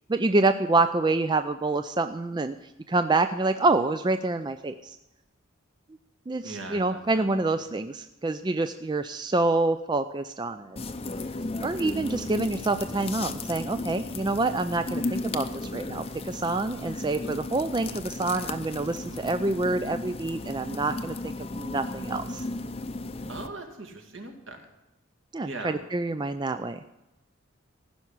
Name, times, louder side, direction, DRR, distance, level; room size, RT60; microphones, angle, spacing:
voice 1, 0.1-2.6 2.9-5.0 6.3-10.8 11.6-22.4 25.3-26.8, right 2 dB, 20° right, 10 dB, 0.3 m, -27 dB
voice 2, 6.4-7.6 19.1-19.3 23.3-24.7 25.4-25.8, right 2 dB, 65° right, 4 dB, 2.2 m, -40 dB
sound 1, 10.8-23.5, left 2 dB, 30° left, 0.6 m, -35 dB
15.5 x 5.9 x 9.6 m, 0.99 s
head